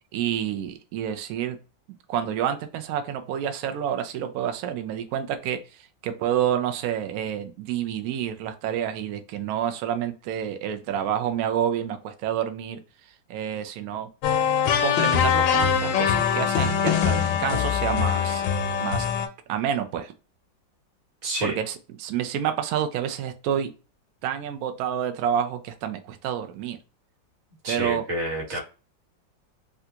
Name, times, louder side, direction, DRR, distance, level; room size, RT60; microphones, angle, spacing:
voice 1, 0.1-1.6 2.1-12.8 13.3-14.1 14.8-18.4 18.8-19.1 19.5-20.1 21.4-23.7 24.2-26.8 27.7-28.0 28.5-28.6, right 9 dB, 70° right, 7 dB, 0.9 m, -28 dB
sound 1, 14.2-19.3, left 8 dB, 85° left, 1.3 m, -23 dB
voice 2, 21.2-21.5 27.6-28.6, right 1 dB, 40° right, -2 dB, 1.6 m, -29 dB
3.3 x 2.5 x 2.7 m, 0.32 s
omnidirectional pair, 1.9 m